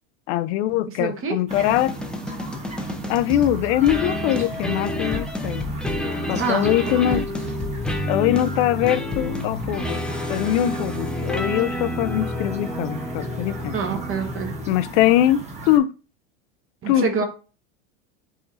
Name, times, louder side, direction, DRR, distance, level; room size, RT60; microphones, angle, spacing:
voice 1, 0.3-1.9 3.1-5.6 6.3-7.3 8.1-10.0 10.3-13.8 14.7-15.9 16.9-17.1, left 13 dB, 60° left, 0.5 m, -22 dB
voice 2, 1.0-1.4 6.4-6.7 7.1-7.2 13.7-14.5 16.8-17.2, right 5 dB, 35° right, 1.1 m, -26 dB
sound 1, 1.5-15.0, left 1 dB, ahead, 0.4 m, -29 dB
sound 2, 1.5-15.8, right 2 dB, 15° right, 1.3 m, -37 dB
4.8 x 2.6 x 4.1 m
hypercardioid pair, 100°, 40 cm